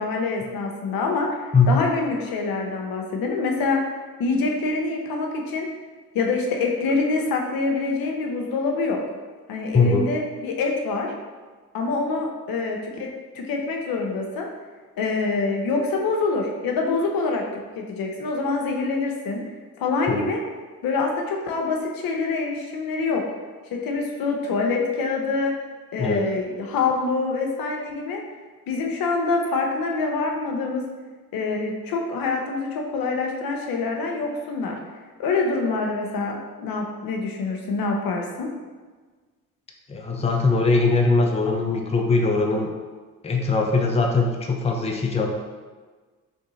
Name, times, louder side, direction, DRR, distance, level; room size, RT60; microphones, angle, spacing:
voice 1, 0.0-3.9 4.2-5.7 6.1-9.0 9.5-11.1 11.7-14.5 15.0-17.5 17.8-19.4 19.8-20.4 20.8-23.2 23.7-25.5 25.9-28.2 28.7-30.8 31.3-34.8 35.2-38.5, left 3 dB, 70° left, 1 dB, 0.7 m, -25 dB
voice 2, 39.9-42.7 43.2-45.3, left 3 dB, 15° left, 2 dB, 0.6 m, -21 dB
3.1 x 2.7 x 3.9 m, 1.4 s
supercardioid pair, 50°, 36 cm